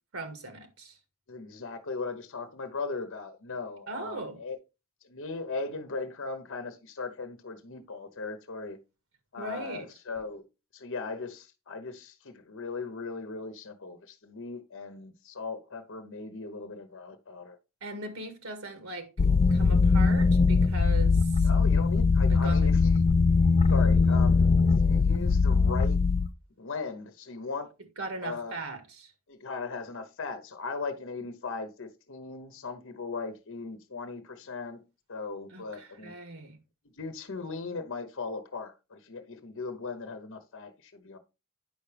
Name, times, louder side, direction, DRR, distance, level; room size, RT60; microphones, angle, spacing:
voice 1, 0.1-1.0 3.9-4.4 9.4-9.9 17.8-19.1 19.5-21.5 22.3-22.7 28.0-29.1 35.5-36.6, right 2 dB, 75° right, 1.8 m, -39 dB
voice 2, 1.3-4.6 5.0-8.8 9.3-10.4 10.7-17.6 21.4-23.0 23.7-24.5 24.8-26.0 26.6-27.7 28.2-28.5 29.3-34.8 35.1-36.2 37.0-41.2, left 4 dB, 60° left, 0.9 m, -38 dB
sound 1, 19.2-26.3, left 4 dB, 30° left, 0.3 m, -21 dB
9.2 x 5.8 x 3.3 m
head